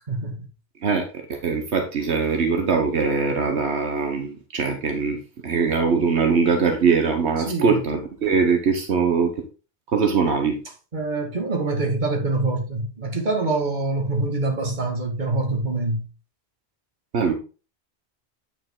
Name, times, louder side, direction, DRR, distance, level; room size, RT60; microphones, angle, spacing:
voice 1, 0.1-0.4 7.4-7.8 10.9-16.0, right 2 dB, 45° right, 1.9 m, -25 dB
voice 2, 1.4-5.2 5.4-9.3 9.9-10.6 17.1-17.3, right 5 dB, 80° right, 1.4 m, -21 dB
9.0 x 5.3 x 3.7 m
omnidirectional pair, 1.1 m